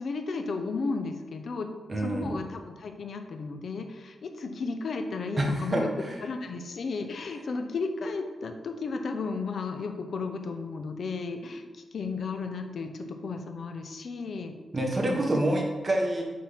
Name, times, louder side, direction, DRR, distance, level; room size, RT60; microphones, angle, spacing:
voice 1, 0.0-1.7 1.9-5.9 6.2-14.5 15.1-15.3, left 4 dB, 65° left, 5 dB, 0.8 m, -34 dB
voice 2, 1.9-2.3 5.4-6.2 14.7-16.2, right 1 dB, 30° right, 0 dB, 1.4 m, -27 dB
6.5 x 3.8 x 5.7 m, 1.3 s
wide cardioid pair, 105°, 0 cm